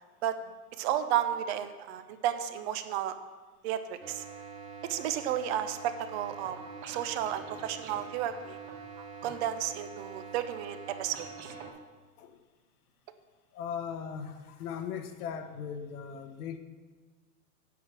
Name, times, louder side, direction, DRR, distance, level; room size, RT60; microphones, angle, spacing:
voice 1, 0.8-3.1 3.6-4.2 4.9-6.6 6.9-8.6 9.0-11.5, right 10 dB, 45° right, 10 dB, 0.6 m, -32 dB
sound 1, 4.0-11.7, right 5 dB, 60° right, 1.6 m, -45 dB
voice 2, 13.5-16.6, left 7 dB, 70° left, 7 dB, 1.1 m, -38 dB
8.3 x 5.9 x 6.0 m, 1.3 s
hypercardioid pair, 130°, 47 cm